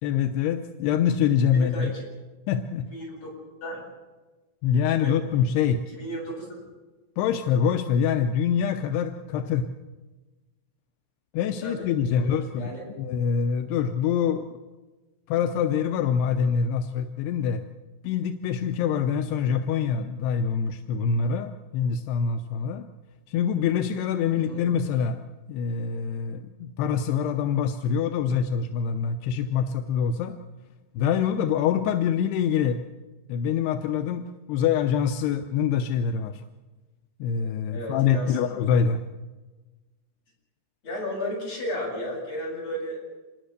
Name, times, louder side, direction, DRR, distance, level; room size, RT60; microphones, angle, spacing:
voice 1, 0.0-1.9 2.5-2.9 4.6-5.8 7.2-9.7 11.3-12.7 13.0-14.5 15.3-17.6 18.0-22.9 23.3-25.2 25.5-30.4 30.9-32.8 33.3-36.4 37.2-39.0, left 7 dB, 75° left, 6 dB, 2.5 m, -25 dB
voice 2, 1.5-2.0 2.9-3.3 3.6-3.8 5.0-5.1 5.9-6.6 11.6-11.9 12.2-12.8 24.3-24.6 37.7-38.5 40.8-43.0, equal, 30° left, -2 dB, 8.9 m, -34 dB
26.5 x 21.5 x 6.7 m, 1.2 s
omnidirectional pair, 5.5 m